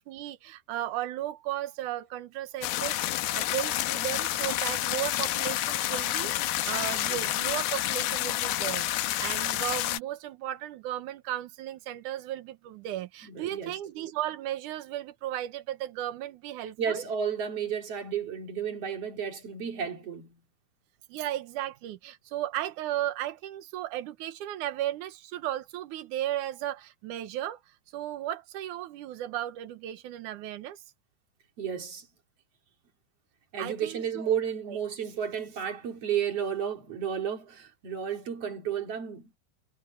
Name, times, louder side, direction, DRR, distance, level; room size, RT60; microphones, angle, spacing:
voice 1, 0.1-17.0 21.1-27.6 27.9-30.8 33.6-34.3 34.7-34.8, right 13 dB, 85° right, 1.7 m, -35 dB
sound 1, 2.6-10.0, left 15 dB, 75° left, 2.4 m, -29 dB
voice 2, 6.9-7.3 13.2-13.7 16.8-20.4 31.6-32.1 33.5-39.3, right 8 dB, 35° right, 3.6 m, -32 dB
omnidirectional pair, 5.2 m